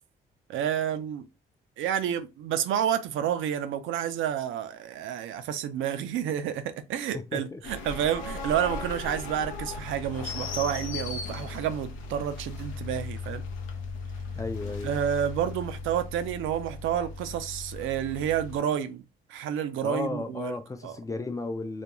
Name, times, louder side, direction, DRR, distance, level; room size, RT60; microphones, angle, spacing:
voice 1, 0.5-1.2 1.8-13.4 14.8-19.0 19.3-20.6 20.8-21.0, right 9 dB, 80° right, 0.4 m, -30 dB
voice 2, 7.1-7.6 14.3-15.0 19.8-21.8, left 3 dB, 15° left, 0.3 m, -34 dB
sound 1, 7.6-18.6, left 4 dB, 90° left, 0.6 m, -37 dB
2.4 x 2.2 x 2.9 m
cardioid pair, 90°, 20 cm